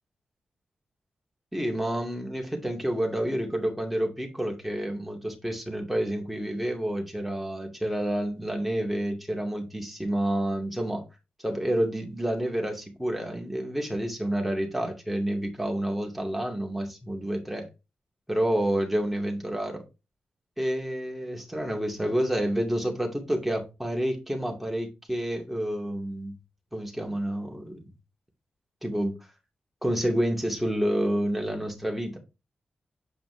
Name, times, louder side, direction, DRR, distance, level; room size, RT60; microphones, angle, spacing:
voice 1, 1.5-11.0 11.4-17.7 18.3-19.8 20.6-26.3 26.7-27.9 28.8-29.2 29.8-32.2, right 1 dB, 5° right, 2.3 m, -29 dB
7.9 x 4.9 x 3.3 m
wide cardioid pair, 130°, 3 cm